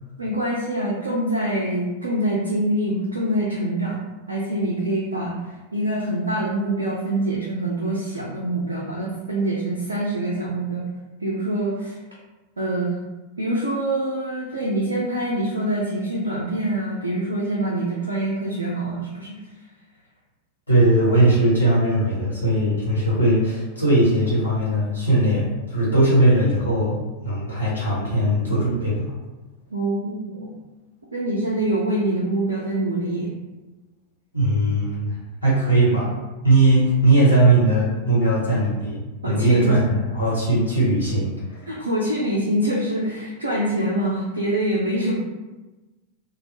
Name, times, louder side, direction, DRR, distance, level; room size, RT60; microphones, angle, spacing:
voice 1, 0.2-10.9 11.2-12.0 12.6-13.0 13.4-19.4 29.7-30.5 31.1-33.3 39.2-39.7 41.7-45.1, right 1 dB, 75° right, -5 dB, 0.4 m, -25 dB
voice 2, 20.7-29.1 34.3-35.1 35.4-36.2 36.4-41.7, right 1 dB, 85° left, -8 dB, 1.1 m, -19 dB
2.2 x 2.0 x 3.0 m, 1.1 s
figure-of-eight pair, 90°, 0 cm